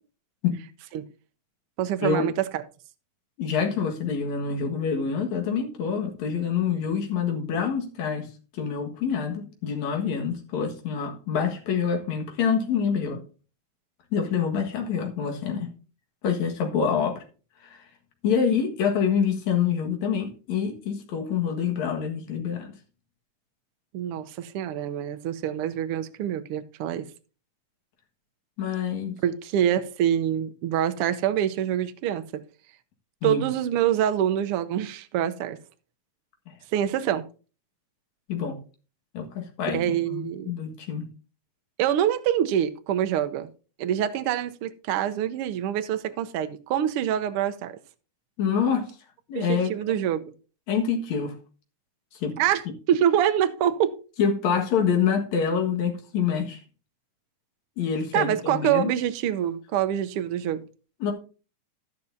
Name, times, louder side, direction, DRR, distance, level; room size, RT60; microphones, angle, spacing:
voice 1, 1.8-2.6 23.9-27.1 29.2-32.4 33.2-35.6 36.7-37.2 39.6-40.5 41.8-43.5 43.8-47.8 49.3-50.2 52.4-52.6 52.9-54.0 58.1-60.7, right 10 dB, 75° right, 1.3 m, -25 dB
voice 2, 3.4-8.3 8.5-13.2 14.1-15.7 16.2-17.2 17.6-17.8 18.2-22.7 28.6-29.2 33.2-33.4 36.5-36.6 38.3-38.6 39.1-41.1 48.4-48.9 49.3-49.7 50.7-51.3 52.2-52.3 54.2-56.6 57.8-58.9 61.0-61.1, left 6 dB, 65° left, 2.9 m, -26 dB
12.0 x 10.5 x 2.7 m
omnidirectional pair, 3.5 m